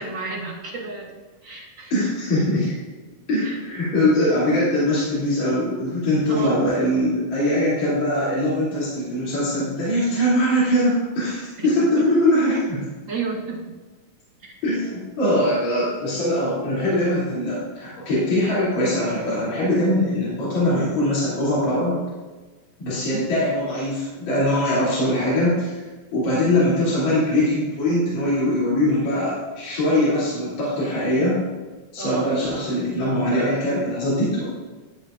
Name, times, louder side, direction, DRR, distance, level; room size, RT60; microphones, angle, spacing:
voice 1, 0.0-1.9 3.4-3.6 6.3-6.6 11.6-11.7 13.1-13.6 14.4-14.5 23.0-23.3 32.0-32.2, right 4 dB, 50° right, -3 dB, 1.5 m, -32 dB
voice 2, 1.9-2.7 3.3-12.9 14.6-22.0 22.8-25.8 26.1-31.4 31.9-34.4, left 1 dB, 55° left, -10 dB, 4.2 m, -22 dB
12.0 x 8.1 x 2.5 m, 1.2 s
omnidirectional pair, 3.9 m